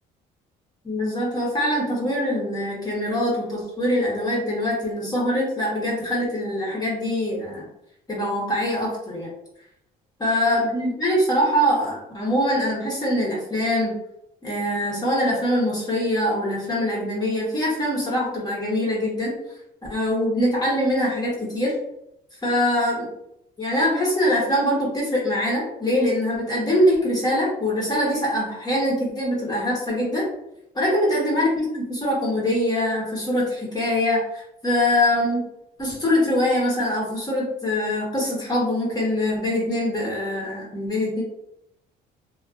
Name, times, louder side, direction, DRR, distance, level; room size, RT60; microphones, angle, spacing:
voice 1, 0.8-7.7 8.1-9.3 10.2-14.0 14.4-19.4 19.9-21.7 22.4-23.1 23.6-30.3 30.7-35.5 35.8-41.2, left 1 dB, 25° left, -5 dB, 1.1 m, -23 dB
2.6 x 2.5 x 2.4 m, 0.79 s
cardioid pair, 110°, 17 cm